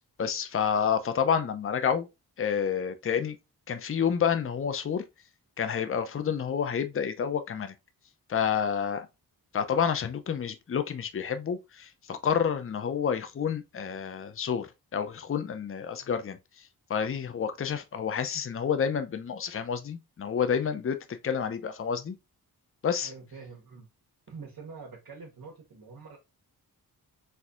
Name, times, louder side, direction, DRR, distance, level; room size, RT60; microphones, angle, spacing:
voice 1, 0.2-2.1 2.4-3.4 3.7-5.0 5.6-7.7 8.3-9.1 9.5-16.4 16.9-22.2 22.8-23.1, left 7 dB, 35° left, 0.5 m, -29 dB
voice 2, 23.0-23.9 24.3-26.2, right 4 dB, 55° right, 1.1 m, -45 dB
4.2 x 2.7 x 2.4 m
cardioid pair, 70°, 40 cm